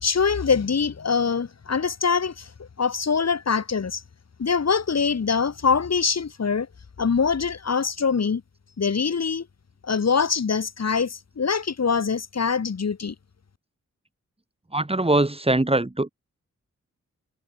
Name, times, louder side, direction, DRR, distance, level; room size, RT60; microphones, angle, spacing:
voice 1, 0.0-4.0 4.4-6.7 7.0-8.4 8.8-9.5 9.8-13.1, left 5 dB, 60° left, 3.5 m, -24 dB
voice 2, 14.7-16.1, right 2 dB, 20° right, 6.1 m, -22 dB
wide cardioid pair, 115°, 29 cm